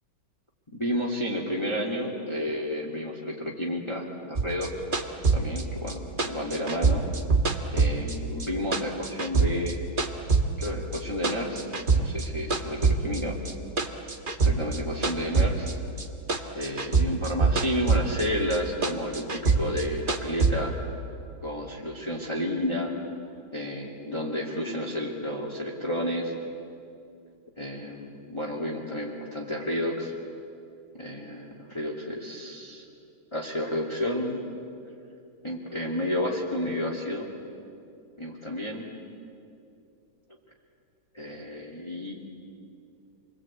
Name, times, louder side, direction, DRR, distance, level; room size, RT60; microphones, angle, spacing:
voice 1, 0.8-4.7 5.3-7.0 7.7-9.8 10.6-11.6 11.9-12.8 13.0-13.3 14.4-15.7 16.5-20.7 21.4-22.9 23.5-26.3 27.6-30.1 31.0-32.8 33.3-34.4 35.4-37.3 38.2-38.9 41.1-42.1, left 1 dB, 15° left, -2 dB, 2.4 m, -31 dB
sound 1, 4.4-8.5 8.7-10.7 10.9-12.3 12.5-16.0 16.3-18.3 18.5-20.5, right 4 dB, 30° right, 1.3 m, -24 dB
28.5 x 22.5 x 8.7 m, 2.6 s
omnidirectional pair, 2.3 m